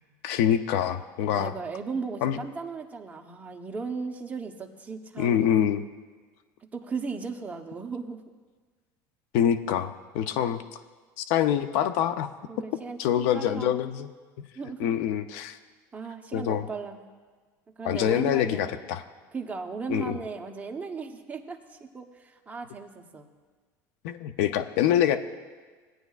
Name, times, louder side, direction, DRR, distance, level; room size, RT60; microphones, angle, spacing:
voice 1, 0.2-1.5 2.2-2.4 5.2-5.8 9.3-10.6 11.2-12.3 13.0-14.1 14.8-15.6 16.3-16.7 17.8-19.0 19.9-20.2 24.0-25.2, left 10 dB, 80° left, 11 dB, 0.5 m, -25 dB
voice 2, 1.3-5.5 6.7-8.2 12.5-13.8 14.5-14.8 15.9-17.0 17.8-18.9 19.3-23.3, right 4 dB, 20° right, 3 dB, 0.9 m, -36 dB
18.0 x 9.1 x 2.4 m, 1.4 s
supercardioid pair, 115°, 9 cm